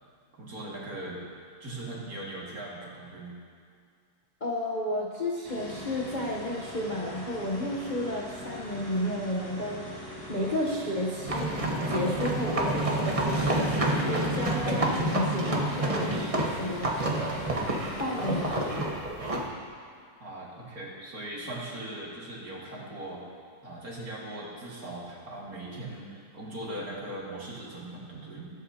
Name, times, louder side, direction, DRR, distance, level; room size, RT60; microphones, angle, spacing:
voice 1, 0.3-1.2 1.6-3.3 20.2-23.2 23.6-28.5, right 1 dB, 50° right, -5 dB, 2.5 m, -39 dB
voice 2, 4.4-11.6 11.9-17.4 18.0-19.0, left 1 dB, 35° left, -4 dB, 0.8 m, -32 dB
sound 1, 5.4-18.7, left 1 dB, 10° left, 1.9 m, -42 dB
sound 2, 11.2-19.5, right 1 dB, 25° right, 0.8 m, -28 dB
20.0 x 8.8 x 2.9 m, 2.1 s
omnidirectional pair, 2.0 m